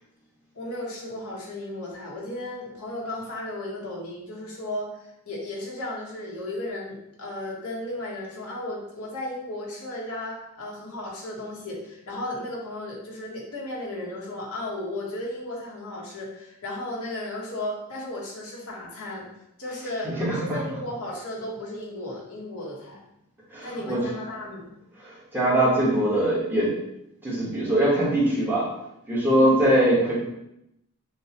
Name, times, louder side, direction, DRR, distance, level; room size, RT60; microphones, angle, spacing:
voice 1, 0.5-19.2 19.6-20.1 20.3-23.0 23.6-24.7 29.3-29.5, left 1 dB, 85° left, -3 dB, 1.2 m, -35 dB
voice 2, 20.0-20.6 23.5-24.1 25.0-26.8 27.2-28.7 29.1-30.2, right 1 dB, 10° right, -7 dB, 1.2 m, -22 dB
6.2 x 2.3 x 2.9 m, 0.83 s
head